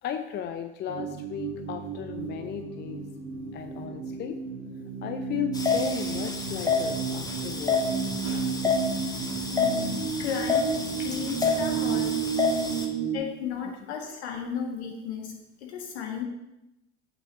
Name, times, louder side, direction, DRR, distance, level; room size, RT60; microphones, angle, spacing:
voice 1, 0.0-3.1 3.5-4.4 5.0-8.1 8.6-9.2 11.9-12.1 12.7-13.0 13.6-13.7, left 9 dB, 30° left, 8 dB, 0.6 m, -36 dB
sound 1, 0.9-13.2, right 6 dB, 45° right, 1.5 m, -32 dB
sound 2, 5.5-12.9, left 4 dB, 10° left, 1.2 m, -29 dB
sound 3, 7.8-8.5 9.3-9.6 10.3-10.4 11.2-12.2, left 3 dB, 45° left, 1.9 m, -48 dB
voice 2, 9.5-9.9 10.2-12.2 13.1-15.3 15.6-16.2, left 7 dB, 70° left, 1 dB, 1.8 m, -34 dB
8.4 x 5.8 x 4.1 m, 0.92 s
figure-of-eight pair, 75°, 34 cm